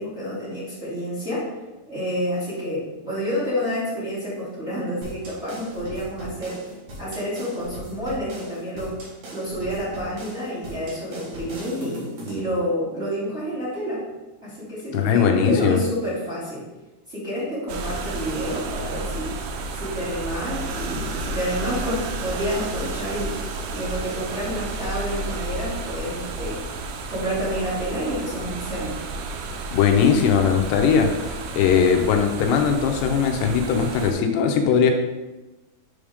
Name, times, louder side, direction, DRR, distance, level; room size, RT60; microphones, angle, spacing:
voice 1, 0.0-1.5 1.9-6.6 7.0-9.0 9.3-14.0 14.4-16.6 17.1-19.3 19.7-23.4 23.7-26.7 27.1-29.0, equal, 25° right, -11 dB, 1.7 m, -29 dB
sound 1, 5.0-12.5, equal, 50° right, 2.4 m, -39 dB
voice 2, 14.9-15.8 29.7-31.1 31.6-34.9, left 7 dB, 80° left, 4 dB, 2.8 m, -19 dB
sound 2, 17.7-34.1, right 3 dB, 85° right, 2.0 m, -32 dB
7.9 x 5.1 x 3.5 m, 1.1 s
omnidirectional pair, 4.9 m